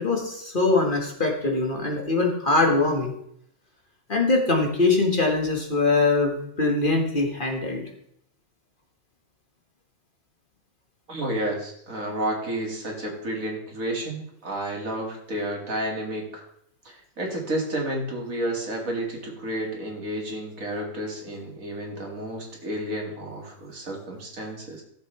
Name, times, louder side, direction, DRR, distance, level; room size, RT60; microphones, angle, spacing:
voice 1, 0.0-3.1 4.1-7.9, left 3 dB, 35° left, 1 dB, 1.9 m, -22 dB
voice 2, 11.1-16.4 16.8-24.8, right 1 dB, 70° right, 0 dB, 2.6 m, -31 dB
16.0 x 7.4 x 3.3 m, 0.74 s
omnidirectional pair, 1.5 m